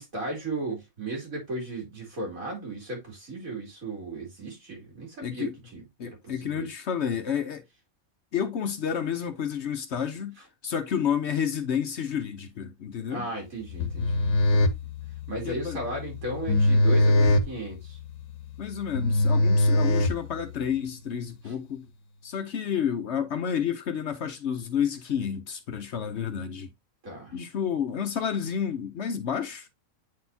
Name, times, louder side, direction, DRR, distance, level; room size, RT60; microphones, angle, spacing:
voice 1, 0.0-6.7 13.1-14.1 14.5-14.7 15.3-18.0 21.4-21.5 27.0-27.3, right 2 dB, 75° right, 3.4 m, -35 dB
voice 2, 5.2-5.5 6.0-7.6 8.3-10.3 10.6-13.3 15.4-15.8 18.6-21.9 22.2-26.7 27.3-29.7, left 8 dB, 60° left, 0.9 m, -30 dB
sound 1, 13.7-20.7, left 1 dB, 75° left, 1.2 m, -23 dB
8.5 x 4.1 x 2.7 m
omnidirectional pair, 1.5 m